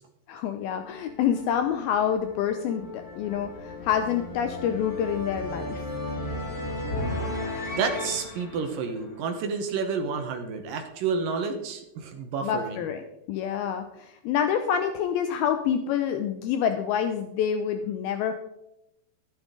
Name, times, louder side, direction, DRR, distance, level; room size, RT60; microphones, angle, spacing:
voice 1, 0.3-5.8 12.4-13.0 13.3-18.3, left 8 dB, 80° left, 7 dB, 2.2 m, -27 dB
sound 1, 0.8-9.8, left 1 dB, 50° left, 1.0 m, -35 dB
voice 2, 7.7-12.8, right 5 dB, 70° right, 5 dB, 2.2 m, -30 dB
13.5 x 11.5 x 3.8 m, 0.86 s
omnidirectional pair, 5.0 m